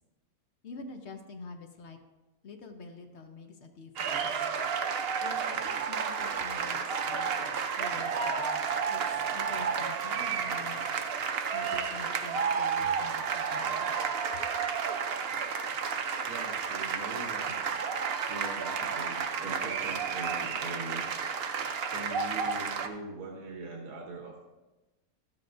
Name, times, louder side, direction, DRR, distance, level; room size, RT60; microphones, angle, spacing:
voice 1, 0.6-2.0 2.4-4.5 5.2-8.6 8.9-10.8 11.5-14.0, left 3 dB, 60° left, 5 dB, 0.9 m, -47 dB
sound 1, 4.0-22.9, right 6 dB, 60° right, 0.7 m, -31 dB
voice 2, 16.3-17.8 18.3-21.3 21.9-24.4, right 2 dB, 85° right, 1 dB, 1.5 m, -42 dB
12.5 x 7.6 x 2.5 m, 1.1 s
omnidirectional pair, 1.5 m